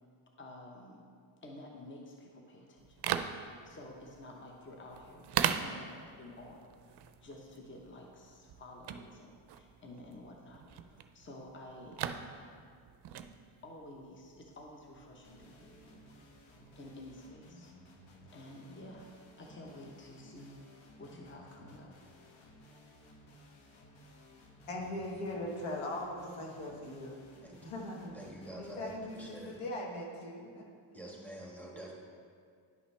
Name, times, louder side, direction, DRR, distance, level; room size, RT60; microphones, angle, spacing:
voice 1, 0.4-1.1 1.4-12.5 13.6-16.0 16.7-17.7 18.3-19.1 19.4-21.9, left 1 dB, 25° left, 0 dB, 1.0 m, -51 dB
sound 1, 2.8-17.0, right 9 dB, 50° right, 0.5 m, -41 dB
sound 2, 15.2-29.6, left 1 dB, 65° left, 1.3 m, -58 dB
voice 2, 24.7-27.2 27.6-28.2 28.6-30.7, left 1 dB, 90° left, -1 dB, 1.4 m, -40 dB
voice 3, 28.1-29.5 30.9-31.9, right 1 dB, 5° left, -3 dB, 1.5 m, -46 dB
10.5 x 5.6 x 3.3 m, 2.1 s
cardioid pair, 100°, 50 cm